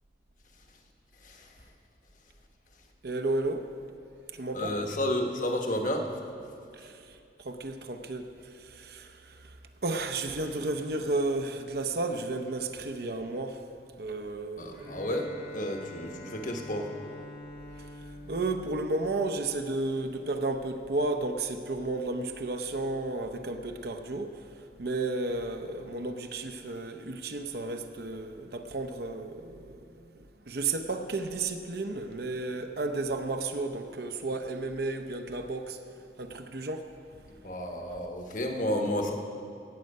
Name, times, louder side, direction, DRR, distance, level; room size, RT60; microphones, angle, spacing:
voice 1, 3.0-3.7 4.4-4.7 6.8-6.9 7.4-8.3 8.8-9.1 9.8-13.6 14.0-14.9 18.3-24.3 24.8-29.8 30.5-35.8 36.2-36.8, right 2 dB, 60° right, 6 dB, 0.7 m, -32 dB
voice 2, 4.5-6.1 14.6-16.9 37.4-39.1, left 1 dB, 45° left, 3 dB, 1.2 m, -31 dB
Bowed string instrument, 14.7-19.5, left 1 dB, 60° left, 2.0 m, -46 dB
17.0 x 7.6 x 5.4 m, 2.7 s
head